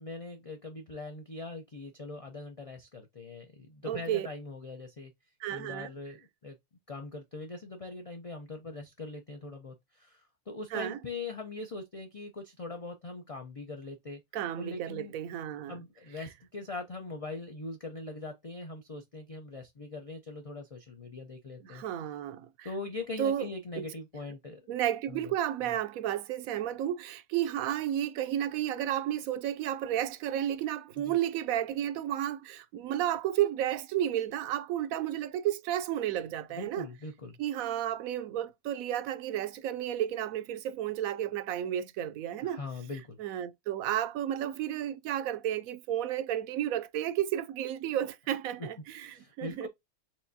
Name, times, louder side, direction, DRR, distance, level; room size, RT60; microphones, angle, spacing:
voice 1, 0.0-5.1 5.5-6.6 6.9-14.2 14.6-15.1 15.7-21.8 22.6-24.6 25.1-25.3 25.6-25.8 31.0-31.2 36.5-37.4 42.4-43.2 48.6-48.7 48.9-49.7, left 3 dB, 55° left, 0.3 m, -41 dB
voice 2, 3.8-4.3 5.4-5.9 10.7-11.0 14.3-15.8 21.6-22.7 23.2-23.5 23.8-23.9 24.7-36.9 37.4-42.6 43.2-49.7, right 11 dB, 70° right, 0.9 m, -32 dB
4.6 x 3.4 x 2.7 m
omnidirectional pair, 1.6 m